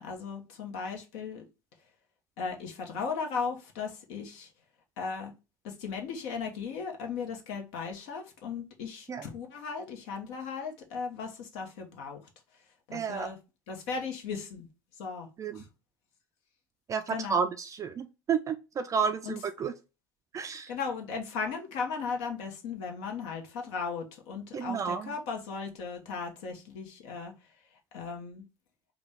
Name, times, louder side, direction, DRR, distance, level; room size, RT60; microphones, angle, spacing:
voice 1, 0.0-1.4 2.4-4.5 5.0-5.3 5.6-12.2 12.9-13.4 13.7-14.7 15.0-15.3 15.5-15.7 17.1-17.5 19.2-19.4 20.7-27.3 27.9-28.4, left 5 dB, 65° left, 1.0 m, -36 dB
voice 2, 12.9-13.3 15.4-15.6 16.9-19.7 20.3-20.7 24.5-25.1, right 6 dB, 30° right, 0.4 m, -31 dB
3.8 x 2.3 x 3.5 m
hypercardioid pair, 85°, 11 cm